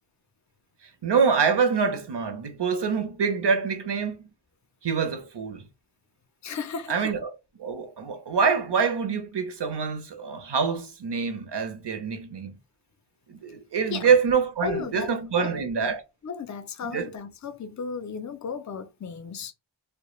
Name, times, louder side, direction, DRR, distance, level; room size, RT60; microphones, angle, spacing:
voice 1, 1.0-4.2 4.8-5.7 6.9-12.6 13.3-16.0 16.8-17.1, right 5 dB, 60° right, 0.6 m, -25 dB
voice 2, 6.4-7.1 13.9-14.1 14.6-15.6 16.2-19.5, left 5 dB, 40° left, 0.4 m, -35 dB
2.2 x 2.1 x 3.0 m
wide cardioid pair, 50°, 47 cm